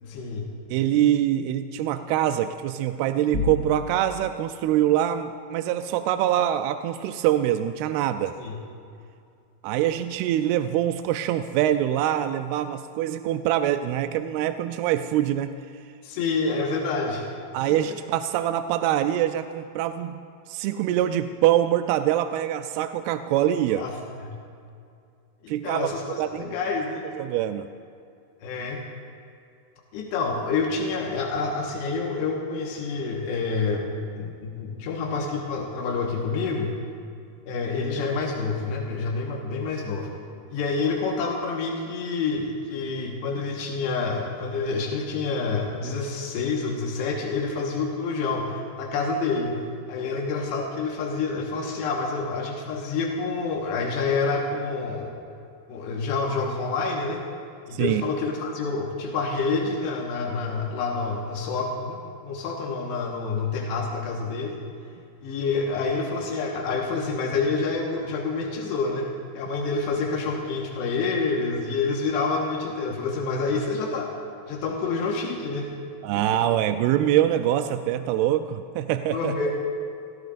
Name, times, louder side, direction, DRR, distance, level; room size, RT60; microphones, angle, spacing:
voice 1, 0.0-0.5 8.4-8.6 16.0-17.3 17.7-17.8 23.8-23.9 24.2-24.4 25.4-27.1 28.4-28.8 29.9-33.8 34.2-36.8 37.5-40.1 40.5-49.6 49.9-55.1 55.7-57.2 57.7-64.6 65.2-69.1 69.4-74.1 74.5-75.7 79.1-79.5, left 4 dB, 90° left, -1 dB, 3.5 m, -28 dB
voice 2, 0.7-8.3 9.6-15.5 17.5-20.2 20.5-23.9 25.5-25.9 26.2-26.5 27.2-27.7 57.7-58.0 76.0-79.3, right 12 dB, 85° right, 9 dB, 2.3 m, -24 dB
sound 1, 3.3-4.3, left 4 dB, 20° left, 2.2 m, -30 dB
29.5 x 17.5 x 2.5 m, 2.5 s
omnidirectional pair, 4.8 m